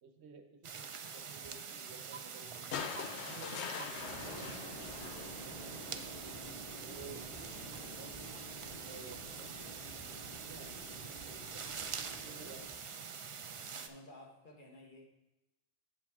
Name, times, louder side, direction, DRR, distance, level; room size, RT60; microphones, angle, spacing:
voice 1, 0.0-2.8 3.1-4.5 5.5-6.2 6.8-8.2 8.6-10.2 10.4-13.1, right 5 dB, 80° right, 7 dB, 1.1 m, -55 dB
sound 1, 0.6-13.9, right 6 dB, 55° right, 0.3 m, -45 dB
sound 2, 2.7-6.0 7.3-7.4, left 7 dB, 85° left, 0.9 m, -43 dB
sound 3, 4.0-12.7, equal, 35° left, 2.4 m, -50 dB
voice 2, 13.7-15.0, left 1 dB, 50° left, -1 dB, 1.5 m, -54 dB
7.4 x 7.3 x 3.5 m, 0.98 s
omnidirectional pair, 1.1 m